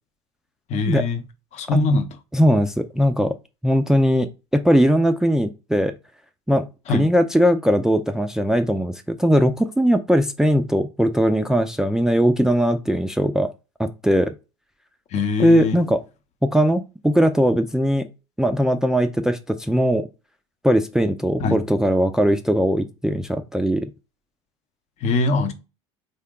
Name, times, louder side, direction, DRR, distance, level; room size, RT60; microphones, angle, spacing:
voice 1, 0.7-1.2 1.5-2.1 6.9-7.1 15.1-15.8 21.4-21.6 25.0-25.5, left 4 dB, 45° left, 0.7 m, -21 dB
voice 2, 2.3-3.3 3.6-4.3 4.5-5.9 6.5-13.5 13.8-14.3 15.4-16.0 16.4-18.1 18.4-20.1 20.6-23.9, equal, 5° right, 0.4 m, -19 dB
3.7 x 2.2 x 3.6 m
hypercardioid pair, 85°, 15 cm